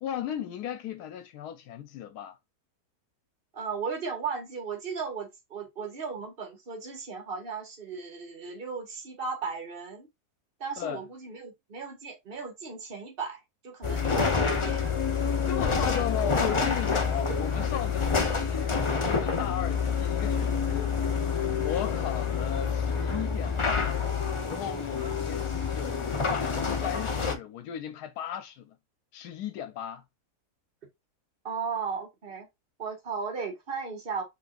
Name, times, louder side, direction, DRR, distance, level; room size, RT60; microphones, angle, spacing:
voice 1, 0.0-2.4 10.8-11.0 15.4-18.7 19.1-21.0 21.6-24.0 24.5-28.8 29.1-30.0, left 10 dB, 80° left, 1.1 m, -36 dB
voice 2, 3.5-10.1 10.6-14.8 25.0-25.1 31.4-32.5 32.8-34.2, right 5 dB, 35° right, 1.6 m, -36 dB
sound 1, 13.8-27.3, left 5 dB, 45° left, 0.4 m, -28 dB
5.9 x 3.2 x 2.5 m
omnidirectional pair, 1.7 m